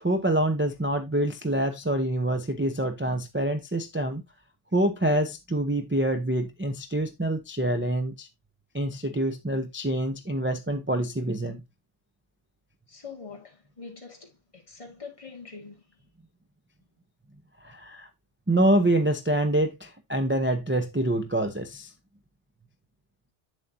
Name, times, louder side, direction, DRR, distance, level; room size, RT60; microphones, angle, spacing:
voice 1, 0.0-4.2 4.7-8.3 8.7-11.6 17.6-18.1 18.5-21.9, right 1 dB, 10° right, 0.6 m, -26 dB
voice 2, 12.9-15.8, left 5 dB, 25° left, 2.0 m, -44 dB
8.3 x 7.6 x 2.7 m
omnidirectional pair, 1.2 m